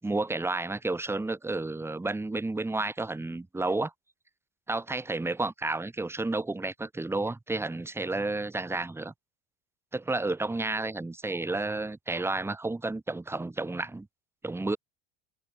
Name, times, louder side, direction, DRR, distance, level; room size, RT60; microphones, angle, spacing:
voice 1, 0.0-3.9 4.7-9.1 9.9-14.1 14.4-14.8, right 2 dB, 5° right, 2.1 m, -31 dB
supercardioid pair, 140°, 38 cm